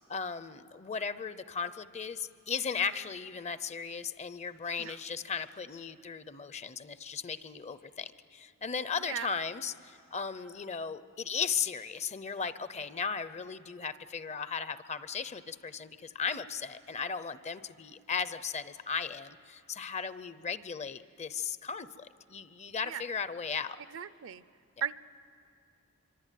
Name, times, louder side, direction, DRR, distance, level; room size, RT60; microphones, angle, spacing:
voice 1, 0.1-23.8, left 6 dB, 30° left, 14 dB, 0.6 m, -36 dB
voice 2, 23.9-24.4 24.8-24.9, right 9 dB, 60° right, 15 dB, 0.6 m, -37 dB
25.0 x 24.5 x 9.2 m, 2.5 s
head